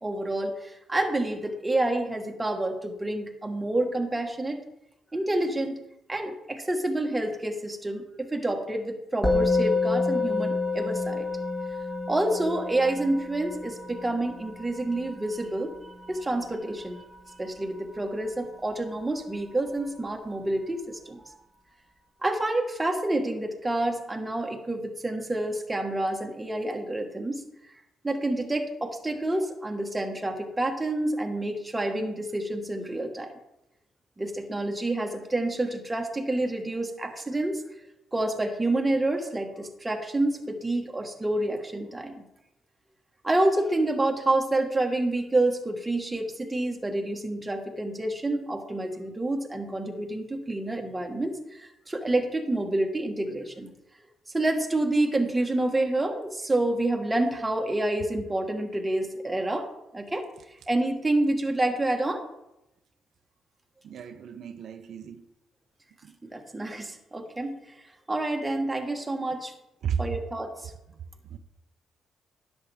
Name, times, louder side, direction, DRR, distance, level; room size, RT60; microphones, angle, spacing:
voice 1, 0.0-4.6 5.1-5.8 6.1-11.3 12.1-15.7 16.1-17.0 17.4-21.4 22.2-27.4 28.0-33.3 34.2-37.6 38.1-42.3 43.2-53.7 54.3-59.7 59.9-60.2 60.7-62.2 66.2-67.6 68.1-69.5 70.0-70.7, right 1 dB, 15° right, 3 dB, 1.4 m, -28 dB
Musical instrument, 9.2-18.8, left 3 dB, 15° left, 1.8 m, -30 dB
voice 2, 63.8-65.2 66.0-66.1 69.8-70.2 70.9-71.4, right 7 dB, 65° right, 7 dB, 0.6 m, -34 dB
10.5 x 7.2 x 3.4 m, 0.88 s
cardioid pair, 90°, 0 cm